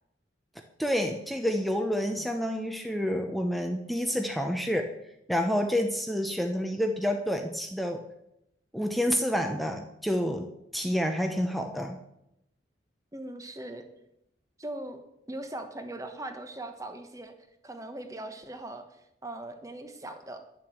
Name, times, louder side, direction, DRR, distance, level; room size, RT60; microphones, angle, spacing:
voice 1, 0.8-4.9 5.3-8.0 8.7-12.0, equal, ahead, 4 dB, 0.8 m, -29 dB
voice 2, 13.1-13.9 14.6-15.0 15.3-17.3 17.6-20.4, right 1 dB, 15° right, 6 dB, 1.2 m, -40 dB
11.0 x 7.4 x 7.8 m, 0.82 s
head